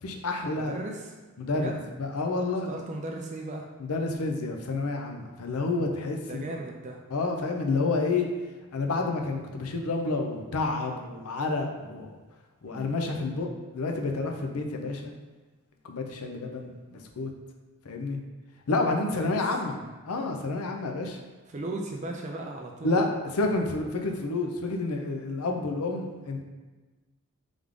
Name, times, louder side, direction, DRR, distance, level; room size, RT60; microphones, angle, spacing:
voice 1, 0.0-0.7 1.4-1.7 2.0-2.7 3.8-6.4 7.1-8.3 8.7-12.1 12.6-13.5 13.7-15.1 15.8-17.3 17.8-18.2 18.7-21.2 22.8-23.1 23.3-26.4, left 3 dB, 85° left, 3 dB, 0.6 m, -29 dB
voice 2, 0.6-1.1 1.5-1.9 2.7-3.6 6.3-7.0 12.7-12.8 19.1-19.3 21.5-23.0, right 2 dB, 35° right, 1 dB, 0.3 m, -36 dB
3.5 x 3.5 x 3.6 m, 1.2 s
head